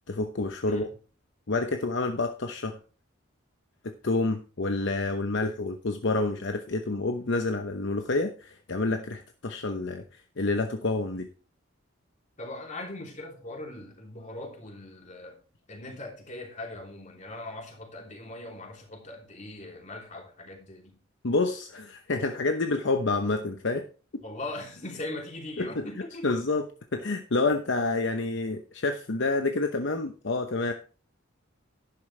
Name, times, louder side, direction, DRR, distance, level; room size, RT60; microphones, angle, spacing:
voice 1, 0.1-0.9 1.5-2.8 3.8-11.3 21.2-23.9 24.1-24.2 25.6-25.9 26.2-26.7 26.9-30.7, left 3 dB, 60° left, 0.9 m, -28 dB
voice 2, 12.4-15.4 15.7-21.0 24.2-26.2, left 2 dB, 40° left, 3.1 m, -40 dB
11.5 x 10.5 x 3.3 m
head